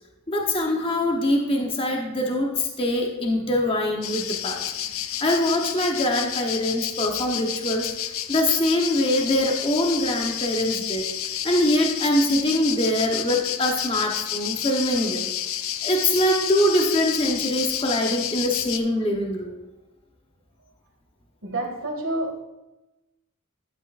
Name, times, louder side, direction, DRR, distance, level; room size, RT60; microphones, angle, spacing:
voice 1, 0.3-4.6 5.2-7.9 8.3-11.1 11.4-15.3 15.8-19.5, left 1 dB, 25° left, 1 dB, 1.0 m, -23 dB
sound 1, 4.0-18.8, left 11 dB, 70° left, 0.5 m, -30 dB
voice 2, 21.4-22.4, right 1 dB, 70° right, 1 dB, 2.1 m, -28 dB
11.5 x 8.2 x 2.5 m, 0.98 s
head